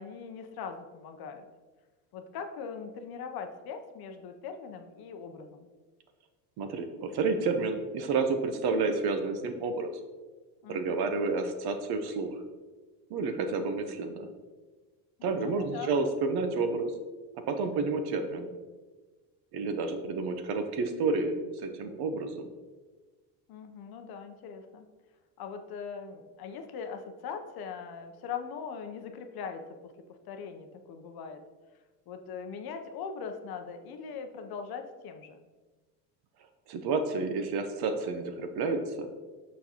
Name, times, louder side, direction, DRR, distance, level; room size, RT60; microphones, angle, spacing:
voice 1, 0.0-1.4 2.1-5.7 10.6-11.0 15.2-15.9 23.5-24.9 25.4-29.9 30.2-31.4 32.1-35.4, left 6 dB, 50° left, 6 dB, 0.7 m, -41 dB
voice 2, 6.6-9.9 10.7-12.3 13.1-14.3 15.2-16.9 17.5-18.5 19.5-22.5 36.7-39.1, right 4 dB, 50° right, 8 dB, 0.8 m, -30 dB
6.3 x 5.7 x 2.9 m, 1.3 s
supercardioid pair, 100°, 50 cm